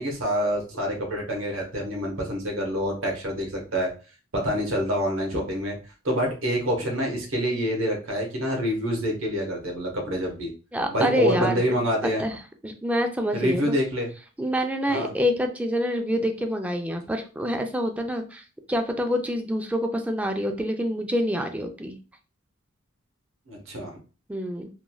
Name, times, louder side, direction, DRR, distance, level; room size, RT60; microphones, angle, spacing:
voice 1, 0.0-3.9 4.3-5.7 6.0-10.5 10.9-12.2 13.3-14.1 14.9-15.1 23.5-23.9, equal, 70° right, 1 dB, 0.9 m, -26 dB
voice 2, 10.7-11.7 12.0-12.4 12.6-13.8 14.4-22.0 24.3-24.7, equal, 5° right, 5 dB, 0.3 m, -27 dB
3.0 x 2.5 x 2.2 m, 0.34 s
head